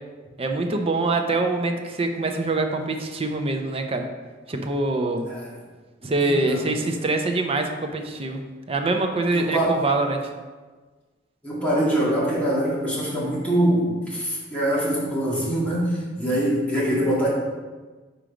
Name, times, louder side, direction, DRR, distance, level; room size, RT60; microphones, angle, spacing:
voice 1, 0.4-4.1 4.5-5.3 6.0-10.3, right 2 dB, 30° right, 5 dB, 0.6 m, -24 dB
voice 2, 6.2-7.0 9.3-9.8 11.4-17.3, right 1 dB, 5° left, -8 dB, 1.9 m, -24 dB
5.1 x 4.4 x 5.0 m, 1.4 s
head